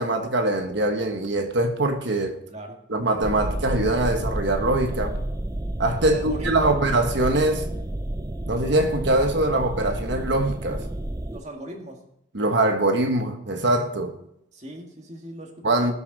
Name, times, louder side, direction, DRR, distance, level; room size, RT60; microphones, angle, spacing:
voice 1, 0.0-2.4 2.9-5.2 5.8-7.7 8.5-10.8 12.3-14.1 15.6-15.9, right 2 dB, 55° right, 1.2 m, -23 dB
sound 1, 3.2-11.4, right 1 dB, 15° right, 0.5 m, -30 dB
voice 2, 6.0-6.9 11.3-12.1 14.5-15.9, equal, 35° right, 2.0 m, -38 dB
19.0 x 7.0 x 4.1 m
head